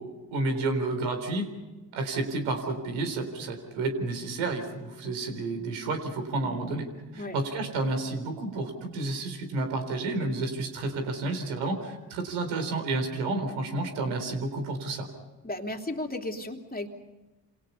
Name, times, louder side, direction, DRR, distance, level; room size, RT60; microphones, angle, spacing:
voice 1, 0.0-1.5 1.9-6.9 7.1-15.1, right 2 dB, 80° right, 6 dB, 4.2 m, -30 dB
voice 2, 15.4-16.9, left 1 dB, 20° left, 3 dB, 3.2 m, -34 dB
28.5 x 28.0 x 5.7 m, 1.1 s
hypercardioid pair, 50°, 48 cm